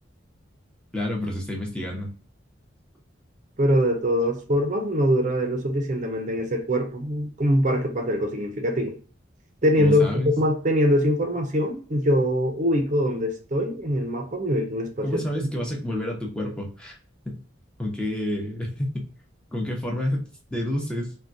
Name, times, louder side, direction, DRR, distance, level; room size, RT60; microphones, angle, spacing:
voice 1, 0.9-2.1 9.8-10.4 15.0-17.0 17.3-17.4 17.8-19.1 19.5-20.2 20.5-21.1, left 1 dB, 5° left, 0.7 m, -29 dB
voice 2, 3.6-9.0 9.6-15.2, equal, 40° right, 0.6 m, -23 dB
3.6 x 2.2 x 2.6 m
head